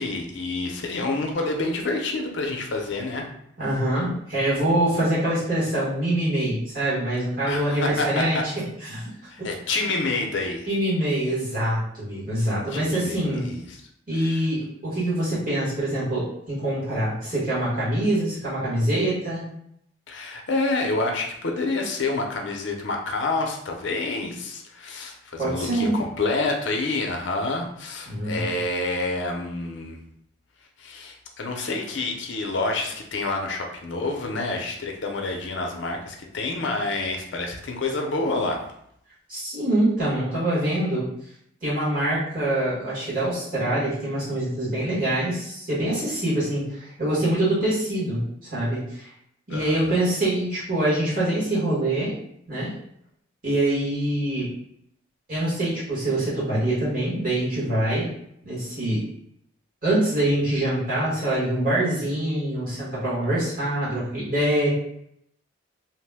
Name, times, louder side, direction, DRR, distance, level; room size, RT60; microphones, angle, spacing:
voice 1, 0.0-3.3 7.5-8.5 9.3-10.7 12.7-13.8 14.1-14.4 20.1-30.0 30.8-38.6 49.5-49.9, left 3 dB, 60° left, 2 dB, 0.5 m, -28 dB
voice 2, 3.6-8.4 8.9-9.1 10.7-13.5 14.1-19.5 25.4-25.9 28.1-28.5 39.3-41.1 41.6-49.1 49.5-52.1 52.5-52.7 53.4-54.5 55.3-58.1 58.4-59.0 59.8-64.7, right 1 dB, 45° right, -9 dB, 1.3 m, -24 dB
2.8 x 2.1 x 3.3 m, 0.74 s
head